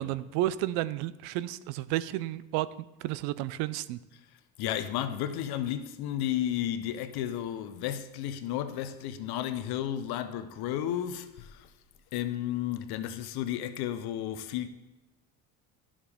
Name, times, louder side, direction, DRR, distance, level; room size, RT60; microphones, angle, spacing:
voice 1, 0.0-2.7 3.0-4.0, right 15 dB, 85° right, 0.5 m, -31 dB
voice 2, 4.6-11.7 12.1-14.7, left 11 dB, 70° left, 0.8 m, -33 dB
10.0 x 7.3 x 3.5 m
supercardioid pair, 90°, 39 cm